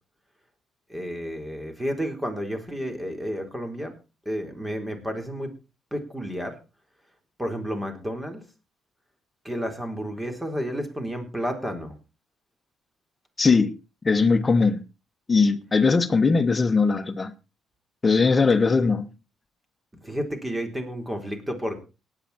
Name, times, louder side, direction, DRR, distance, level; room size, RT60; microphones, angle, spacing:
voice 1, 0.9-3.9 4.3-5.5 5.9-6.6 7.4-8.5 9.4-11.9 20.0-21.8, equal, 10° right, 4.0 m, -31 dB
voice 2, 13.4-13.8 14.0-14.8 15.3-17.3 18.0-19.1, left 4 dB, 30° left, 1.4 m, -20 dB
18.5 x 9.1 x 4.4 m
cardioid pair, 90°, 0 cm